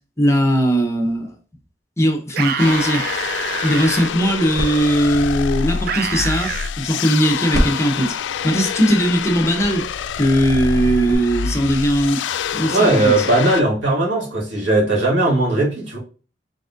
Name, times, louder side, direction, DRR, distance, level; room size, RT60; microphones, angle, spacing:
voice 1, 0.2-1.3 2.0-3.3 3.6-8.1 8.4-9.9 10.1-12.2 12.5-13.3, equal, 15° left, 0.8 m, -19 dB
sound 1, 2.3-4.1 5.9-6.7, right 7 dB, 55° right, 0.4 m, -26 dB
sound 2, 2.6-13.6, left 7 dB, 80° left, 0.3 m, -26 dB
sound 3, 3.6-7.2 7.5-11.2, equal, 20° right, 1.3 m, -30 dB
voice 2, 12.7-16.0, right 2 dB, 80° right, 2.0 m, -18 dB
4.0 x 3.6 x 2.5 m
head